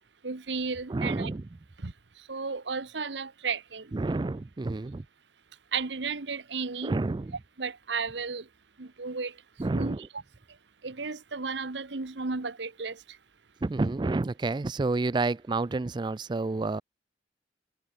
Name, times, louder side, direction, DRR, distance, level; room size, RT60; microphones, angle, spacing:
voice 1, 0.2-1.3 1.8-1.9 2.3-3.9 5.7-7.0 7.6-8.4 8.8-9.3 9.7-10.0 10.8-13.0, right 4 dB, 75° right, 1.2 m, -33 dB
voice 2, 0.9-1.4 3.9-5.0 6.8-7.4 9.6-10.1 13.6-16.8, right 3 dB, 25° right, 0.4 m, -29 dB
head